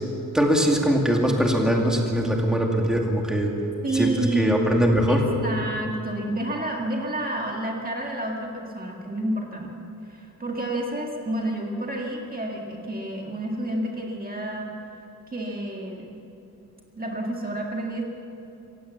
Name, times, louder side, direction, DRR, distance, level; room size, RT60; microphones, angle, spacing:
voice 1, 0.3-3.5 3.9-5.2, equal, ahead, 0 dB, 2.3 m, -21 dB
voice 2, 3.8-4.7 5.1-9.7 10.0-14.7 15.3-16.1 17.0-18.0, right 1 dB, 25° right, -1 dB, 2.0 m, -29 dB
27.0 x 16.5 x 7.2 m, 3.0 s
wide cardioid pair, 180°, 33 cm